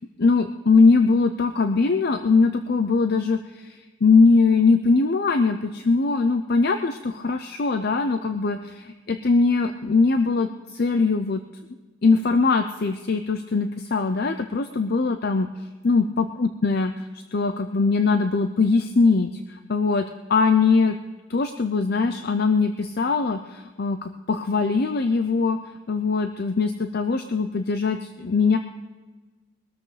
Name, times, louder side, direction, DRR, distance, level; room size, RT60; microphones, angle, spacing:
voice 1, 0.2-11.4 12.0-15.5 15.8-21.0 21.3-25.6 25.9-28.6, left 4 dB, 55° left, 8 dB, 0.6 m, -21 dB
22.5 x 13.0 x 3.3 m, 1.3 s
head